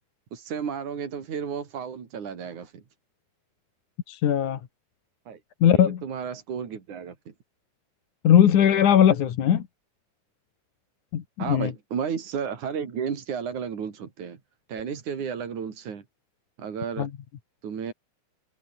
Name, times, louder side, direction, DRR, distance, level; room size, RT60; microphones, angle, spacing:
voice 1, 0.3-2.8 5.3-5.4 5.7-7.2 11.4-14.4 14.7-16.0 16.6-17.1 17.6-17.9, right 7 dB, 80° right, 4.5 m, -33 dB
voice 2, 4.1-4.6 5.6-6.0 8.2-9.6 11.1-11.7 17.0-17.1, left 9 dB, 80° left, 3.4 m, -19 dB
omnidirectional pair, 3.4 m